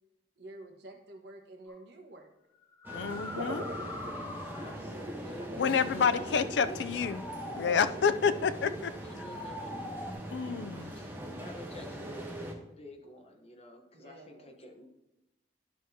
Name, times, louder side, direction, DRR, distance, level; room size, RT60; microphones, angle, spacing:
voice 1, 0.4-2.3 2.9-3.3 7.6-8.2 13.9-14.6, right 2 dB, 75° right, 2 dB, 1.4 m, -50 dB
sound 1, 1.7-1.8 2.6-5.0 6.8-8.0 9.0-10.1, left 1 dB, 15° left, 0.7 m, -42 dB
sound 2, 2.8-12.5, right 1 dB, 10° right, 1.1 m, -42 dB
voice 2, 2.9-3.6 5.6-7.2 7.6-8.9 10.3-10.9, left 6 dB, 90° left, 12 dB, 0.4 m, -28 dB
sound 3, 3.1-7.3 8.2-8.8, equal, 45° right, 1.0 m, -43 dB
voice 3, 4.5-7.1 9.0-9.7 10.7-14.9, left 1 dB, 35° left, 3 dB, 1.0 m, -49 dB
12.0 x 6.0 x 2.8 m, 0.96 s
head